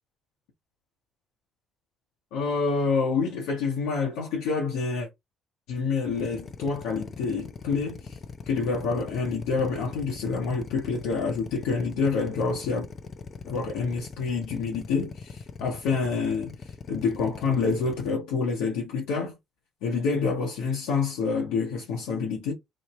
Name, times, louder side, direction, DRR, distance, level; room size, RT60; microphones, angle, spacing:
voice 1, 2.3-5.1 5.7-8.2 8.5-12.9 13.5-16.6 16.9-19.4 19.8-22.5, left 4 dB, 80° left, 0.8 m, -27 dB
Drill, 6.1-18.1, left 5 dB, 45° left, 0.5 m, -41 dB
3.0 x 2.0 x 3.0 m
hypercardioid pair, 60°, 0 cm